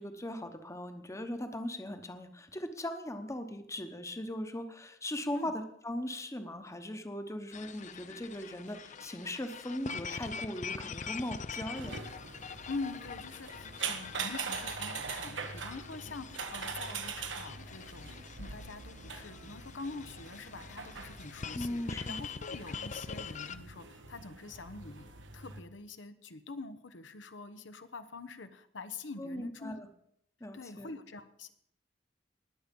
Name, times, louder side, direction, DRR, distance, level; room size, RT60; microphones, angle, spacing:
voice 1, 0.0-12.0 21.5-22.2 29.2-29.9 30.4-30.9, left 1 dB, 15° left, 8 dB, 1.0 m, -39 dB
sound 1, 7.5-23.6, left 5 dB, 40° left, 0.6 m, -44 dB
sound 2, 11.7-25.6, right 5 dB, 80° right, 1.3 m, -43 dB
voice 2, 12.7-29.8 30.5-31.5, left 3 dB, 80° left, 10 dB, 0.9 m, -45 dB
20.0 x 7.9 x 5.3 m, 0.74 s
head